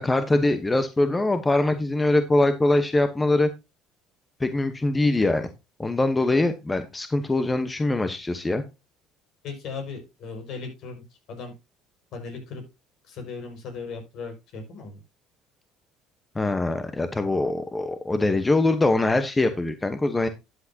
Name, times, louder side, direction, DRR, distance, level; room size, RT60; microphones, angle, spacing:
voice 1, 0.0-3.5 4.4-5.5 5.8-8.6 16.3-20.3, left 2 dB, 15° left, 10 dB, 1.0 m, -23 dB
voice 2, 9.4-11.0 11.3-11.5 12.1-12.6 13.1-15.0, left 4 dB, 60° left, 5 dB, 5.5 m, -37 dB
12.5 x 8.6 x 2.8 m, 0.25 s
cardioid pair, 110°, 0 cm